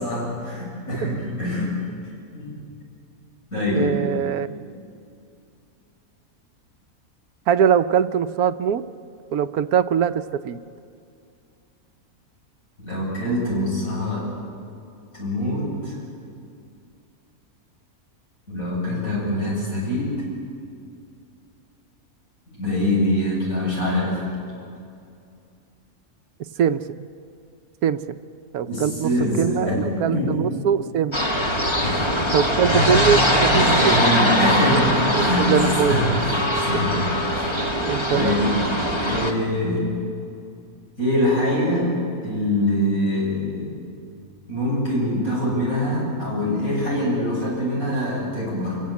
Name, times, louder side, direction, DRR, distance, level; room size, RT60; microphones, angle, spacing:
voice 1, 0.0-1.7 2.0-2.5 3.5-4.0 12.8-14.3 15.1-16.0 18.5-20.2 22.6-24.2 28.7-30.5 31.8-32.1 33.5-35.5 35.9-37.0 37.3-37.6 38.1-38.6 39.0-39.9 41.0-41.9 42.2-43.7 44.5-48.8, left 1 dB, 65° left, -5 dB, 8.3 m, -24 dB
voice 2, 3.6-4.5 7.5-8.8 9.3-10.6 26.6-27.1 27.8-28.2 28.5-29.1 29.4-31.2 32.3-34.0 35.1-36.0 37.8-38.3, right 8 dB, 80° right, 12 dB, 1.2 m, -22 dB
sound 1, 31.1-39.3, equal, 20° left, 2.1 m, -21 dB
28.5 x 17.0 x 8.4 m, 2.5 s
omnidirectional pair, 1.6 m